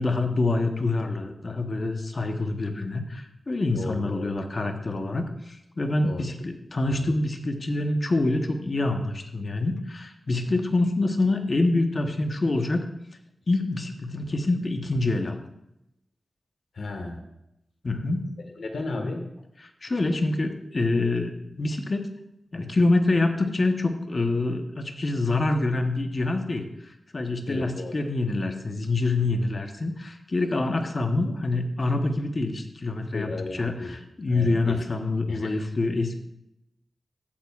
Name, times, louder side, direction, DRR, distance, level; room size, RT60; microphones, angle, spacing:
voice 1, 0.0-12.8 13.5-15.4 17.8-18.3 19.8-22.1 22.5-36.2, left 2 dB, 40° left, 5 dB, 1.0 m, -26 dB
voice 2, 3.7-4.3 6.0-6.3 6.9-7.1 16.7-17.2 18.6-19.3 27.5-28.0 33.1-34.0 34.3-34.8 35.3-35.6, left 2 dB, 75° left, 4 dB, 1.5 m, -34 dB
14.5 x 9.2 x 2.4 m, 0.84 s
wide cardioid pair, 110°, 0 cm